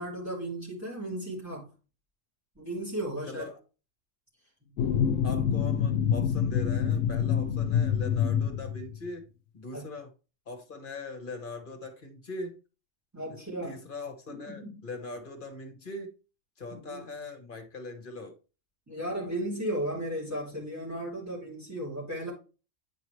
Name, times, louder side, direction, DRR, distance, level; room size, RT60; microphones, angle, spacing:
voice 1, 0.0-1.6 2.5-3.5 9.7-9.9 13.1-13.8 14.3-14.8 16.7-17.0 18.9-22.3, right 1 dB, 10° right, 3.3 m, -35 dB
voice 2, 3.3-3.6 5.2-9.3 9.5-10.1 10.5-12.6 13.2-13.3 13.6-16.1 16.6-18.3, left 3 dB, 45° left, 1.3 m, -41 dB
sound 1, 4.8-9.1, left 8 dB, 80° left, 1.0 m, -26 dB
9.2 x 4.8 x 3.2 m
omnidirectional pair, 1.3 m